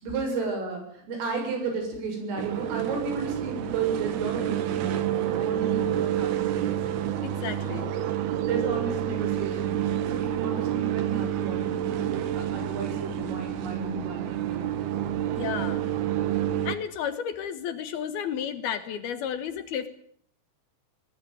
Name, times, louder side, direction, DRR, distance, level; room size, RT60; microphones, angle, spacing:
voice 1, 0.0-5.1 5.3-6.7 7.6-7.8 8.4-9.8 10.1-14.8, right 4 dB, 85° right, 3 dB, 9.4 m, -33 dB
sound 1, 2.4-16.8, right 11 dB, 65° right, 3.1 m, -28 dB
voice 2, 7.2-7.9 15.3-15.9 16.6-19.9, left 8 dB, 65° left, 12 dB, 2.8 m, -32 dB
22.5 x 20.0 x 9.2 m, 0.63 s
omnidirectional pair, 5.6 m